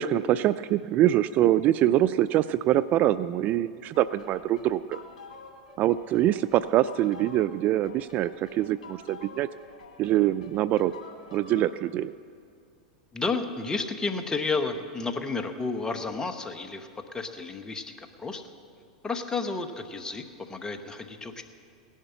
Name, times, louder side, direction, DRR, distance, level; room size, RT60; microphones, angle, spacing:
voice 1, 0.0-5.0 5.8-9.5 10.0-10.9 11.3-12.1, right 13 dB, 40° right, 16 dB, 0.3 m, -24 dB
sound 1, 3.9-11.7, left 3 dB, 75° left, 2.3 m, -48 dB
voice 2, 13.1-18.4 19.0-21.4, left 4 dB, 15° left, 7 dB, 1.2 m, -32 dB
17.5 x 11.0 x 5.7 m, 2.3 s
hypercardioid pair, 100°, 4 cm